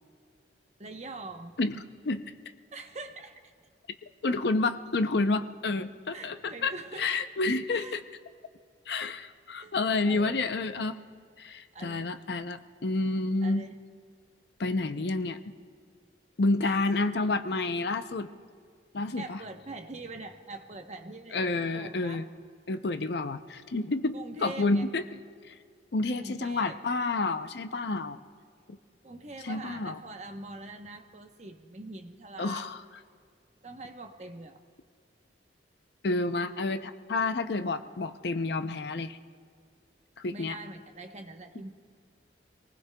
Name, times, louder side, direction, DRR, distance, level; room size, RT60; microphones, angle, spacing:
voice 1, 0.8-1.5 2.7-3.5 6.1-7.1 7.7-7.9 9.6-9.7 10.0-10.4 11.7-12.2 13.4-13.8 16.6-16.9 17.2-17.6 19.2-22.2 24.1-24.9 26.1-26.8 29.0-32.7 33.6-34.6 40.3-41.7, right 2 dB, 35° right, 5 dB, 0.9 m, -43 dB
voice 2, 1.6-2.3 4.2-6.7 7.0-8.0 8.9-11.0 11.4-13.6 14.6-15.4 16.4-18.3 18.9-19.4 21.3-22.3 22.7-25.0 25.5-25.6 25.9-28.2 29.4-30.0 32.4-32.8 36.0-39.2 40.2-40.6, left 3 dB, 60° left, 10 dB, 0.6 m, -29 dB
26.5 x 19.5 x 2.3 m, 2.1 s
head